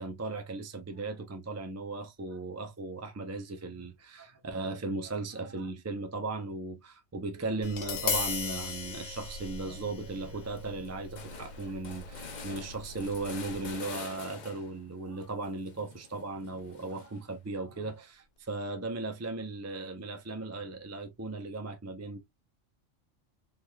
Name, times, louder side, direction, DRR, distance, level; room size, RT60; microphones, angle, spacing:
voice 1, 0.0-22.2, right 3 dB, 25° right, 0.3 m, -37 dB
Tap, 7.6-13.7, left 5 dB, 75° left, 1.3 m, -38 dB
sound 1, 9.2-9.7 10.1-10.2 10.4-14.8 15.2-17.3, left 5 dB, 45° left, 0.6 m, -46 dB
3.5 x 3.1 x 2.3 m
omnidirectional pair, 1.3 m